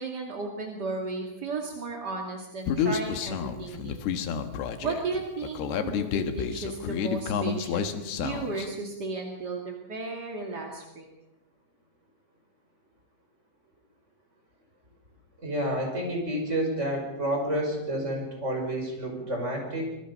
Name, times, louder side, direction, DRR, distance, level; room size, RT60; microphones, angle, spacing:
voice 1, 0.0-4.3 4.8-11.1, right 3 dB, 40° right, 1 dB, 1.5 m, -34 dB
Human voice, 2.7-8.7, left 7 dB, 65° left, 2.8 m, -30 dB
voice 2, 15.4-19.8, right 1 dB, 15° right, 2 dB, 5.5 m, -29 dB
26.0 x 21.0 x 5.5 m, 0.93 s
omnidirectional pair, 5.7 m